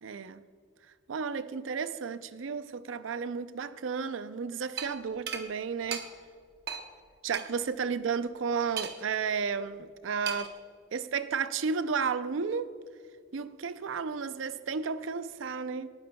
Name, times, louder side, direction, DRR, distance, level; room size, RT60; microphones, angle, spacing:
voice 1, 0.0-0.4 1.1-6.1 7.2-10.6 10.9-12.8 13.3-15.9, right 5 dB, 85° right, 0.5 m, -33 dB
sound 1, 4.8-4.9 5.3-5.4 5.9-6.0 6.7-6.8 7.3-7.4 8.8-9.2 10.3-10.6, right 7 dB, 55° right, 0.9 m, -35 dB
18.5 x 10.5 x 2.2 m
head